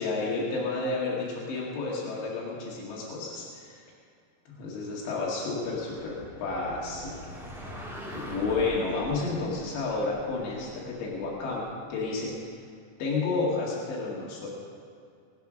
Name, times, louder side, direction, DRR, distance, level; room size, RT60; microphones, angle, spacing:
voice 1, 0.0-3.8 4.5-7.3 8.2-12.3 13.0-14.5, left 3 dB, 85° left, -4 dB, 4.4 m, -31 dB
sound 1, 5.6-12.1, equal, ahead, 1.0 m, -42 dB
20.0 x 8.2 x 6.4 m, 2.3 s
omnidirectional pair, 4.9 m